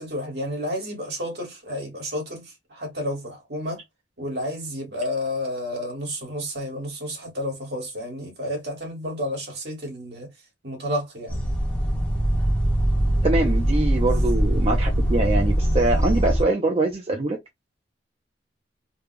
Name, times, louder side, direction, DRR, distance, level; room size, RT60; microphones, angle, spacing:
voice 1, 0.0-3.8 4.2-10.3 10.6-11.4, left 1 dB, 65° right, 1.8 m, -31 dB
sound 1, 11.3-16.4, right 1 dB, 10° left, 1.1 m, -22 dB
voice 2, 13.2-17.4, right 2 dB, 35° right, 0.7 m, -23 dB
3.5 x 2.3 x 3.2 m
head